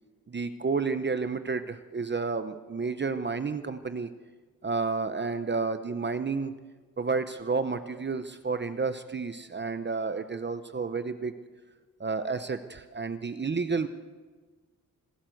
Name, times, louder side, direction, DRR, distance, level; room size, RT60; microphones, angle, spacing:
voice 1, 0.3-4.1 4.6-6.5 7.0-11.3 12.0-13.9, right 4 dB, 30° right, 10 dB, 0.8 m, -31 dB
26.0 x 13.0 x 7.8 m, 1.4 s
wide cardioid pair, 125°, 34 cm